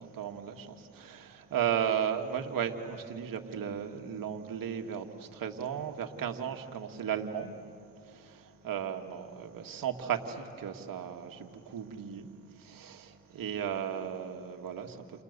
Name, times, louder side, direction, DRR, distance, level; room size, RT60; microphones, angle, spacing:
voice 1, 0.0-7.5 8.0-15.2, right 8 dB, 65° right, 5 dB, 2.2 m, -35 dB
29.5 x 29.5 x 6.9 m, 2.5 s
cardioid pair, 85°, 36 cm